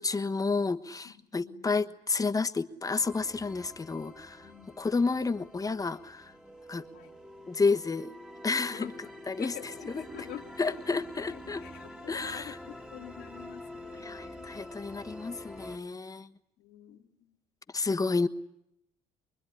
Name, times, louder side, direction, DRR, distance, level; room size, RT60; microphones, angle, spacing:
voice 1, 0.0-4.5 4.8-6.3 6.7-6.9 7.5-8.1 8.4-8.9 9.3-10.0 10.6-11.6 12.1-12.6 14.0-16.3 17.7-18.3, left 4 dB, 20° left, 9 dB, 1.2 m, -30 dB
voice 2, 1.0-1.8 4.4-4.7 6.9-7.2 8.7-8.9 9.4-11.0 11.3-14.7 16.6-17.4, left 11 dB, 85° left, 3 dB, 2.7 m, -47 dB
sound 1, 3.0-15.8, left 1 dB, 5° right, 1.7 m, -47 dB
24.5 x 23.5 x 9.9 m, 0.79 s
cardioid pair, 110°, 17 cm